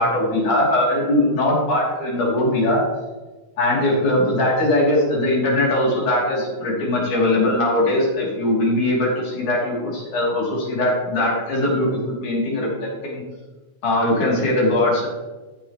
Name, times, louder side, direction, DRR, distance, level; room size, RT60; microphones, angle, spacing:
voice 1, 0.0-2.8 3.6-13.2 13.8-15.1, left 1 dB, 80° left, -4 dB, 4.5 m, -20 dB
14.5 x 7.0 x 3.2 m, 1.2 s
omnidirectional pair, 3.5 m